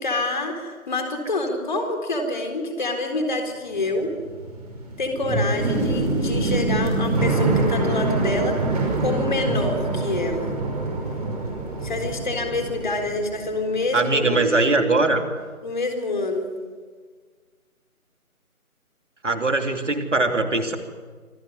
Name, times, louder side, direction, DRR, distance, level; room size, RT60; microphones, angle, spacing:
voice 1, 0.0-4.1 5.0-8.5 9.0-10.5 11.8-14.5 15.6-16.5, left 2 dB, 35° left, 4 dB, 4.0 m, -27 dB
sound 1, 3.8-13.9 14.1-15.0, right 2 dB, 25° right, 5.5 m, -25 dB
voice 2, 13.9-15.2 19.2-20.8, right 3 dB, 55° right, 6 dB, 3.0 m, -21 dB
26.5 x 19.5 x 9.8 m, 1.5 s
figure-of-eight pair, 160°, 43 cm